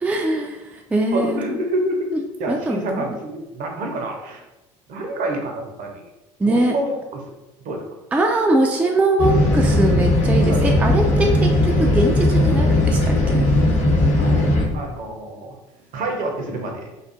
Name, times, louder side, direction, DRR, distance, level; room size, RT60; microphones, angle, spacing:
voice 1, 0.0-1.6 2.1-2.2 2.5-3.0 6.4-6.7 8.1-13.5, right 2 dB, 5° right, 1 dB, 0.3 m, -21 dB
voice 2, 1.1-2.1 2.4-4.4 4.9-5.9 6.5-7.2 7.6-7.8 10.4-10.6 14.2-14.5 14.7-15.5 15.9-16.8, right 1 dB, 50° right, 2 dB, 0.6 m, -27 dB
sound 1, 9.2-14.6, left 1 dB, 45° left, 1.0 m, -17 dB
2.4 x 2.3 x 2.5 m, 0.98 s
hypercardioid pair, 60°, 17 cm